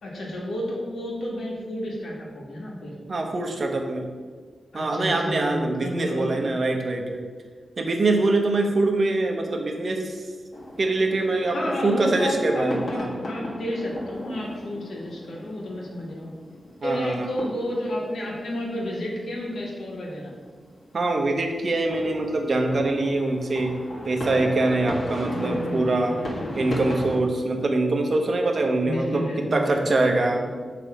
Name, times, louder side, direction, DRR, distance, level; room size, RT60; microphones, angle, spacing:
voice 1, 0.0-3.0 4.7-6.3 11.4-16.3 16.8-20.3 25.2-26.6 28.8-30.6, equal, 85° left, -3 dB, 1.6 m, -31 dB
voice 2, 3.1-4.1 4.7-7.2 7.8-10.2 10.8-11.6 11.8-13.1 16.8-17.3 20.9-23.7 24.0-26.2 26.5-29.2 29.5-30.4, right 2 dB, 50° right, 3 dB, 0.8 m, -24 dB
sound 1, 10.5-27.2, left 1 dB, 55° left, 1.5 m, -37 dB
6.8 x 3.3 x 4.9 m, 1.6 s
wide cardioid pair, 115°, 0 cm